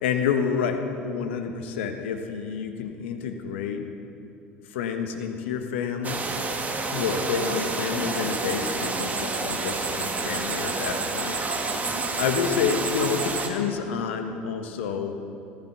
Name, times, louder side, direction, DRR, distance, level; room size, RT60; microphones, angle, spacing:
voice 1, 0.0-3.8 4.7-6.3 6.9-11.4 12.2-15.1, left 6 dB, 70° left, 6 dB, 1.4 m, -28 dB
sound 1, 6.0-13.5, right 3 dB, 25° right, 2.0 m, -29 dB
14.5 x 14.0 x 6.1 m, 2.7 s
hypercardioid pair, 70°, 6 cm